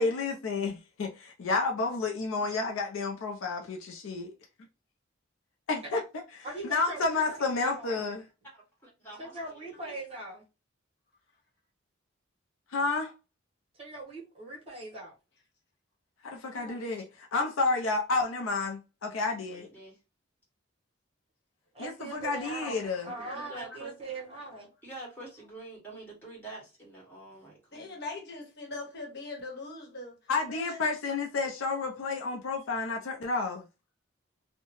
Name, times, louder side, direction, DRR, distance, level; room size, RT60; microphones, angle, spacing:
voice 1, 0.0-4.3 5.7-6.0 6.7-8.2 12.7-13.1 16.4-17.0 17.3-19.7 21.8-23.1 30.3-33.7, left 3 dB, 85° left, 0.5 m, -30 dB
voice 2, 6.4-8.1 9.2-10.4 13.7-15.1 21.7-24.7, right 2 dB, 30° right, 1.3 m, -40 dB
voice 3, 8.5-9.3 9.6-9.7 16.5-16.8 19.5-20.0 23.0-23.9 24.8-28.0, right 2 dB, 10° left, 1.4 m, -47 dB
voice 4, 27.7-30.2 30.4-30.9, left 3 dB, 55° left, 1.0 m, -41 dB
2.7 x 2.1 x 3.0 m
head